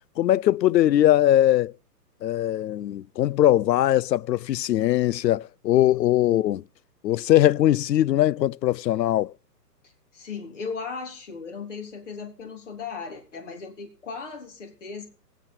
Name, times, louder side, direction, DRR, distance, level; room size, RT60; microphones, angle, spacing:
voice 1, 0.2-1.7 2.2-6.6 7.0-9.3, left 13 dB, 90° left, 0.6 m, -21 dB
voice 2, 10.1-15.1, left 5 dB, 45° left, 3.7 m, -36 dB
19.5 x 8.2 x 5.6 m
hypercardioid pair, 175°, 48 cm